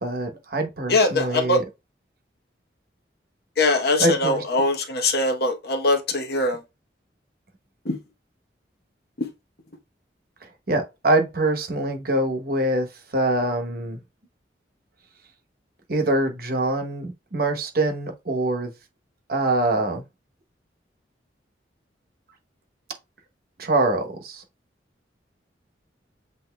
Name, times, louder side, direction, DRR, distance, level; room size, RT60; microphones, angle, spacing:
voice 1, 0.0-1.6 4.0-4.4 10.7-12.9 13.1-14.0 15.9-18.7 19.3-20.0 23.6-24.4, right 2 dB, 55° right, 0.9 m, -24 dB
voice 2, 0.9-1.6 3.6-6.6 7.8-8.0 9.2-9.3, left 2 dB, 60° left, 0.9 m, -22 dB
8.0 x 2.7 x 2.2 m
head